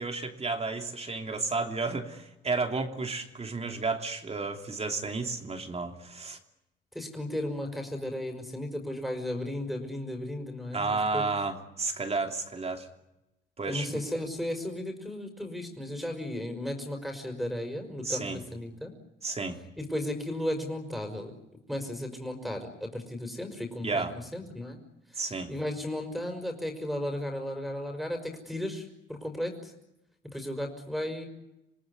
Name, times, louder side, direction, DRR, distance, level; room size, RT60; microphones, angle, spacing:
voice 1, 0.0-6.4 10.7-12.9 13.6-14.0 18.0-18.4 19.2-19.6 23.8-24.1 25.2-25.5, right 3 dB, 30° right, 4 dB, 3.1 m, -32 dB
voice 2, 6.9-11.2 13.7-18.9 19.8-21.3 21.7-24.0 24.3-24.8 25.1-29.7 30.3-31.3, left 1 dB, ahead, 2 dB, 5.6 m, -35 dB
27.5 x 18.5 x 10.0 m, 0.92 s
cardioid pair, 90°, 20 cm